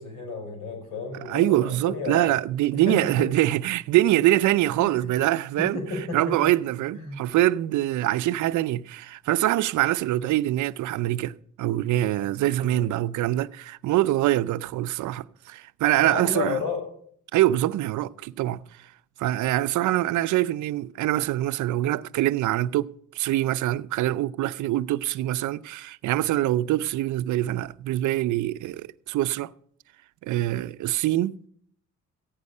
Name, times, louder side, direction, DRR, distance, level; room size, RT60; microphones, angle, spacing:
voice 1, 0.0-2.3 2.7-3.3 4.8-5.1 5.6-6.4 6.9-7.2 12.6-12.9 16.0-16.8, left 3 dB, 85° left, 5.3 m, -32 dB
voice 2, 1.3-5.8 6.1-16.6 17.3-18.6 19.2-29.5 30.2-31.4, right 14 dB, 75° right, 0.5 m, -24 dB
15.0 x 9.5 x 5.4 m
cardioid pair, 90°, 30 cm